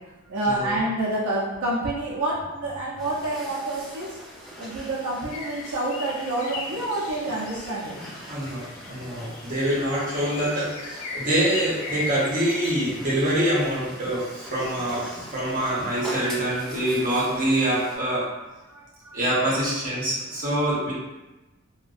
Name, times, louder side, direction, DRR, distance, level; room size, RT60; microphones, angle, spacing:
voice 1, 0.3-4.1 4.6-7.9 18.7-19.2, right 2 dB, 80° right, -5 dB, 0.5 m, -28 dB
sound 1, 3.0-18.0, equal, 5° left, 1.4 m, -42 dB
sound 2, 5.3-12.9, left 3 dB, 65° left, 0.3 m, -38 dB
voice 2, 8.1-18.3 19.1-20.9, right 1 dB, 40° right, -7 dB, 0.8 m, -25 dB
2.5 x 2.1 x 2.4 m, 1.1 s
head